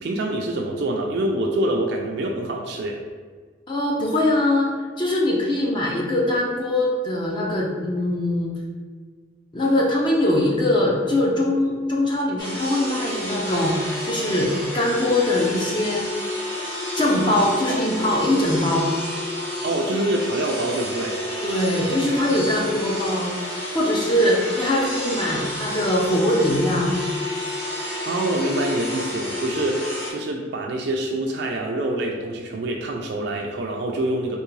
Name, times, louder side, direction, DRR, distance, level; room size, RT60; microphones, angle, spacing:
voice 1, 0.0-3.0 19.6-21.2 28.0-34.4, right 1 dB, 60° right, 0 dB, 0.4 m, -25 dB
voice 2, 3.7-8.5 9.5-16.1 16.9-18.9 21.4-23.4 23.7-27.0, left 1 dB, 25° left, -3 dB, 0.5 m, -22 dB
sound 1, 12.4-30.1, left 1 dB, 75° left, 1.1 m, -30 dB
3.5 x 2.9 x 3.2 m, 1.5 s
head